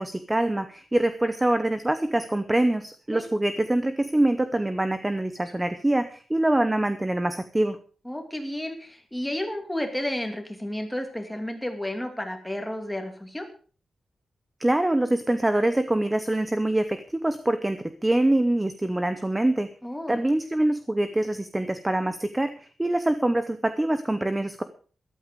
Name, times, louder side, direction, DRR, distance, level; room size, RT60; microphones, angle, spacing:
voice 1, 0.0-7.8 14.6-19.7 20.1-24.6, right 1 dB, 10° right, 10 dB, 0.8 m, -24 dB
voice 2, 8.0-13.5 19.8-20.2, left 1 dB, 5° left, 4 dB, 2.6 m, -32 dB
13.5 x 12.0 x 5.2 m, 0.40 s
wide cardioid pair, 165°, 0 cm